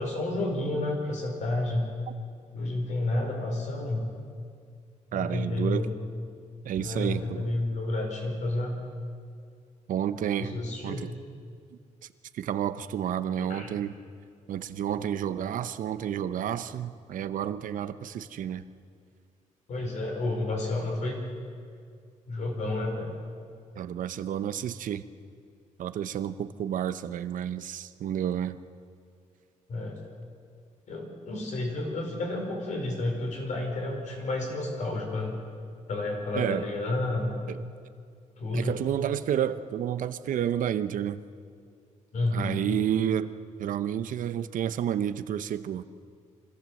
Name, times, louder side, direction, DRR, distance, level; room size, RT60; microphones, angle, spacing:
voice 1, 0.0-1.9 2.5-4.1 5.1-5.9 6.7-8.7 10.4-11.1 13.4-13.7 19.7-21.2 22.3-23.1 29.7-30.0 30.9-35.4 35.9-37.3 38.4-38.7 42.1-42.6, left 2 dB, 65° left, 1 dB, 4.9 m, -30 dB
voice 2, 5.1-5.9 6.6-7.5 9.9-10.6 10.8-11.1 12.3-13.9 14.5-18.6 23.7-25.0 25.8-28.6 36.3-36.7 37.5-37.6 38.5-41.2 42.3-43.3 43.6-45.8, right 10 dB, 85° right, 12 dB, 0.8 m, -30 dB
24.0 x 15.0 x 7.7 m, 2.2 s
wide cardioid pair, 140°, 13 cm